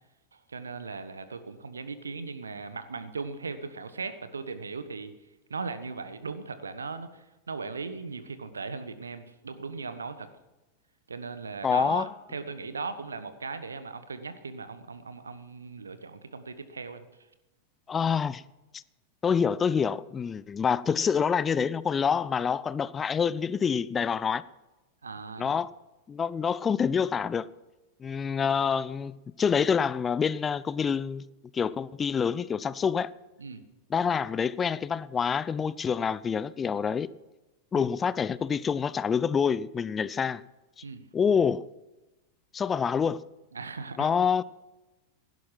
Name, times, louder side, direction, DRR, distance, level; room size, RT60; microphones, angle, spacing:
voice 1, 0.3-5.1 5.5-10.3 11.1-17.0 25.0-25.5 28.4-28.5 33.4-33.6 37.7-37.9 40.8-41.0 43.5-44.1, right 4 dB, 75° right, 1.2 m, -38 dB
voice 2, 11.6-12.1 17.9-18.4 18.7-18.8 19.2-24.4 25.4-25.7 26.1-27.5 28.0-31.2 31.5-33.1 33.9-37.1 37.7-40.4 40.8-40.9 41.1-41.7 42.5-43.2 44.0-44.4, left 6 dB, 20° left, 0.4 m, -27 dB
16.5 x 11.5 x 5.7 m
figure-of-eight pair, 90°, 0 cm